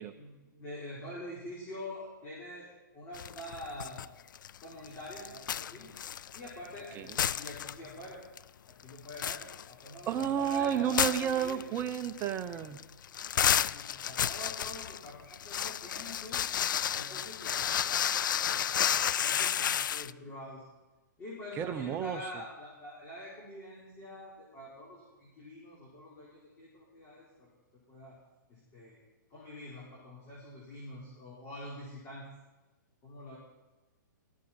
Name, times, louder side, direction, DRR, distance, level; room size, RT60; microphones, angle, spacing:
voice 1, 0.1-4.0 4.6-5.9 6.3-8.2 8.7-11.6 13.3-16.5 16.9-17.8 18.4-20.6 21.2-27.5 27.9-28.2 28.5-29.0 29.3-32.3 33.0-33.4, left 1 dB, 25° left, -6 dB, 4.6 m, -46 dB
sound 1, 3.1-4.1 4.3-6.8 7.1-8.0 8.4-8.5 8.9-20.1, left 9 dB, 70° left, 0.4 m, -32 dB
voice 2, 10.1-12.8 21.6-22.3, right 9 dB, 20° right, 9 dB, 0.8 m, -31 dB
19.0 x 15.0 x 4.4 m, 1.1 s
hypercardioid pair, 145°, 11 cm